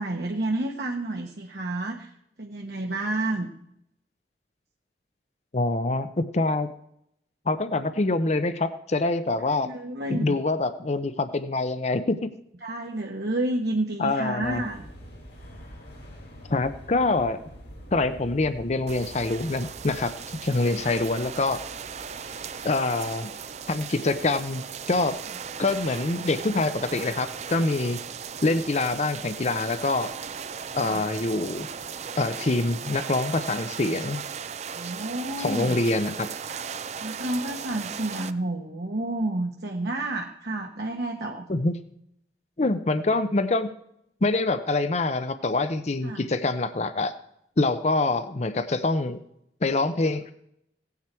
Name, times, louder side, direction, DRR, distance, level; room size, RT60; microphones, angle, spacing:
voice 1, 0.0-2.1 2.4-3.5 9.5-10.4 12.6-14.8 20.8-20.9 30.8-31.0 34.7-35.8 37.0-41.4 46.0-46.2, right 2 dB, 65° right, 0 dB, 1.2 m, -30 dB
voice 2, 5.5-6.7 7.5-9.7 10.1-12.3 14.0-14.6 16.5-17.4 17.9-21.6 22.6-23.3 23.7-25.2 25.6-28.0 28.4-30.1 30.7-31.7 32.2-34.2 35.4-36.3 41.5-41.7 42.6-43.7 44.2-47.1 47.6-49.2 49.6-50.3, left 2 dB, 40° left, 11 dB, 0.6 m, -25 dB
sound 1, 14.4-32.1, equal, 80° left, 4.5 m, -48 dB
sound 2, 18.9-38.3, right 7 dB, 40° right, 0.5 m, -37 dB
17.0 x 9.5 x 4.4 m, 0.75 s
head